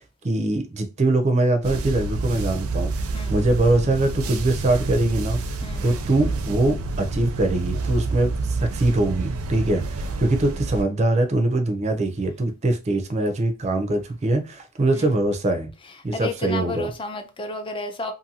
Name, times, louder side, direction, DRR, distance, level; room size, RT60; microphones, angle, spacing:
voice 1, 0.2-15.7 16.0-16.9, right 2 dB, 30° right, 0.5 m, -23 dB
sound 1, 1.6-10.8, right 3 dB, 85° right, 0.4 m, -28 dB
voice 2, 5.6-6.0 14.9-15.2 16.1-18.1, left 3 dB, 25° left, 0.5 m, -32 dB
2.6 x 2.5 x 2.7 m
head